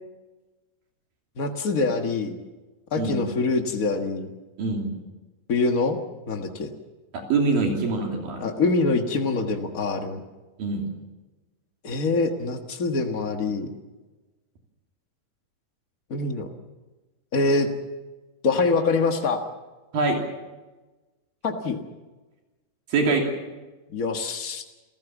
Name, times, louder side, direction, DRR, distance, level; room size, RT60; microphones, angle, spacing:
voice 1, 1.4-2.4 2.9-4.3 5.5-6.0 6.3-6.7 8.4-10.2 11.8-13.7 16.1-16.5 17.3-17.7 18.4-19.4 21.4-21.8 23.9-24.6, left 3 dB, 75° left, 4 dB, 0.7 m, -24 dB
voice 2, 3.0-3.3 4.6-4.9 7.3-8.4 10.6-10.9 19.9-20.2 22.9-23.2, right 3 dB, 70° right, 1 dB, 4.6 m, -24 dB
29.0 x 15.5 x 7.2 m, 1.2 s
omnidirectional pair, 4.3 m